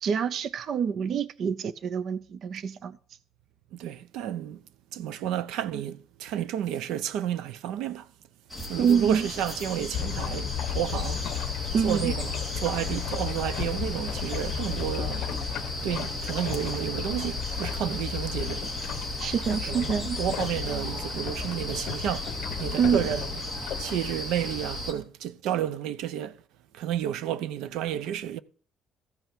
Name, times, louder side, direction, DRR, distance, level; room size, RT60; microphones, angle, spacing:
voice 1, 0.0-3.0 8.8-9.2 11.7-12.1 19.2-20.2 22.8-23.0, right 7 dB, 40° right, 0.5 m, -26 dB
voice 2, 3.7-4.6 4.9-8.1 8.7-11.2 11.5-15.3 15.8-18.7 19.5-19.9 20.2-22.3 22.6-23.4 23.8-26.4 26.7-28.4, right 10 dB, 75° right, 0.7 m, -31 dB
sound 1, 8.5-24.9, left 1 dB, 10° right, 2.1 m, -36 dB
sound 2, 9.9-24.1, left 9 dB, 55° left, 0.9 m, -34 dB
14.5 x 5.7 x 7.3 m
cardioid pair, 180°, 0 cm